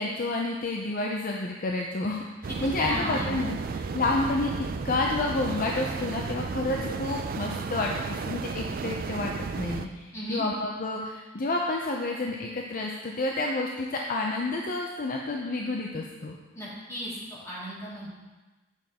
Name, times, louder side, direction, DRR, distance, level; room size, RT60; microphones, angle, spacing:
voice 1, 0.0-4.5 4.8-9.3 9.6-16.4, left 2 dB, 50° left, 0 dB, 0.6 m, -30 dB
sound 1, 2.4-9.9, right 4 dB, 50° right, 0.4 m, -33 dB
voice 2, 2.8-3.4 10.1-10.4 16.6-17.1 17.4-18.1, equal, 15° left, -8 dB, 2.5 m, -35 dB
9.1 x 5.8 x 3.6 m, 1.2 s
head